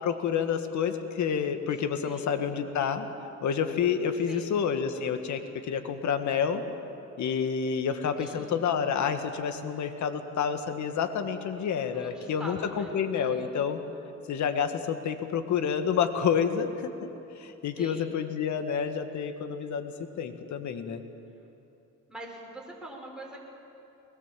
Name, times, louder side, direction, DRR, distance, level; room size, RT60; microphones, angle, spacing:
voice 1, 0.0-3.1 3.4-6.6 7.2-13.8 14.3-17.1 17.4-21.0, left 7 dB, 70° left, 8 dB, 1.8 m, -29 dB
voice 2, 2.0-2.6 4.3-4.6 8.2-8.7 11.9-13.7 17.8-18.2 22.1-23.4, right 1 dB, 5° right, -1 dB, 5.7 m, -44 dB
22.5 x 20.5 x 7.6 m, 2.8 s
cardioid pair, 90°, 30 cm